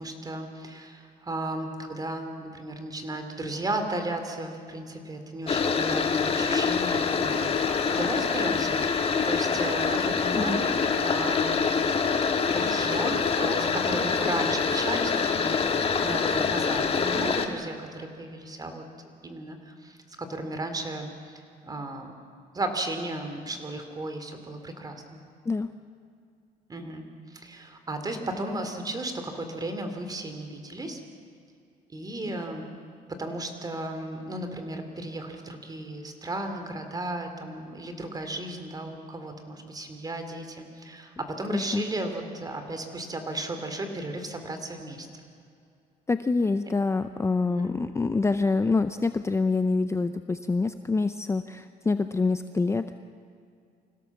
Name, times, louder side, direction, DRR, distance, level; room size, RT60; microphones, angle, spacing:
voice 1, 0.0-10.7 11.0-11.6 12.4-15.7 16.0-18.8 19.2-21.3 21.6-22.1 22.5-25.2 26.7-31.0 31.9-32.6 33.1-45.1 47.5-47.7, right 1 dB, 20° right, 6 dB, 3.0 m, -34 dB
sound 1, 5.5-17.5, left 5 dB, 35° left, 1.7 m, -25 dB
voice 2, 41.5-41.8 46.1-52.9, left 3 dB, 15° left, 10 dB, 0.6 m, -26 dB
25.5 x 17.0 x 7.3 m, 2.4 s
cardioid pair, 110°, 17 cm